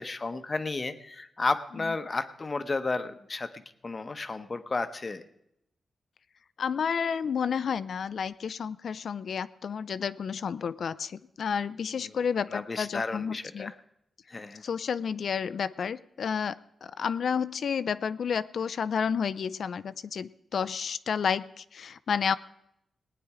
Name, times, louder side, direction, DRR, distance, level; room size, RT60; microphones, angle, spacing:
voice 1, 0.0-5.2 12.0-12.1 12.5-13.7 14.3-14.6, left 3 dB, 30° left, 10 dB, 0.8 m, -33 dB
voice 2, 6.6-13.7 14.6-22.4, left 6 dB, 65° left, 14 dB, 0.4 m, -31 dB
19.0 x 9.4 x 4.8 m, 0.77 s
wide cardioid pair, 120°, 0 cm